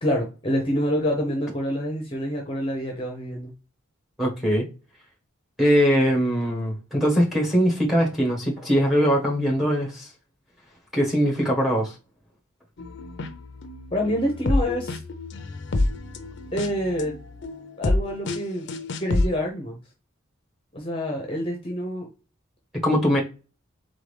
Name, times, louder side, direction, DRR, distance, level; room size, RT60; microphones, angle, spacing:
voice 1, 0.0-3.5 13.9-15.0 16.5-17.1 17.8-18.7 19.0-19.8 20.7-22.1, equal, 25° left, 0.8 m, -27 dB
voice 2, 4.2-4.6 5.6-10.1 10.9-11.9 22.8-23.2, equal, ahead, 1.4 m, -21 dB
sound 1, 12.8-19.3, left 2 dB, 55° left, 0.6 m, -28 dB
3.8 x 3.8 x 3.3 m
head